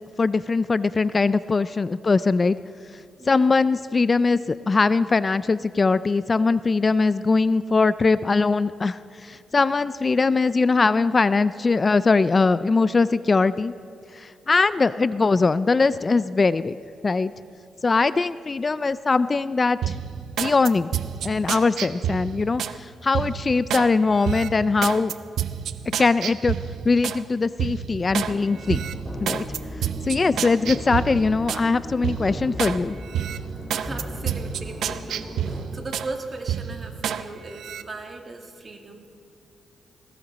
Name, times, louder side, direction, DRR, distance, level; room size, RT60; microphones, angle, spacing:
voice 1, 0.2-2.6 3.3-13.7 14.1-16.8 17.0-17.3 17.8-20.0 20.4-20.9 21.2-25.1 26.0-26.6 26.8-28.8 29.2-29.4 30.0-33.0, left 4 dB, 35° left, 16 dB, 0.3 m, -21 dB
sound 1, 19.8-22.8 23.1-23.9 24.2-27.2 27.6-28.3 28.7-31.7 32.0-32.8 33.1-36.1 36.5-37.2 37.6-37.8, right 9 dB, 80° right, 0.6 m, -29 dB
sound 2, 28.1-35.6, equal, 10° left, 3.9 m, -36 dB
voice 2, 33.7-39.1, right 3 dB, 35° right, 3 dB, 2.2 m, -37 dB
19.5 x 17.0 x 4.1 m, 2.5 s
cardioid pair, 80°, 0 cm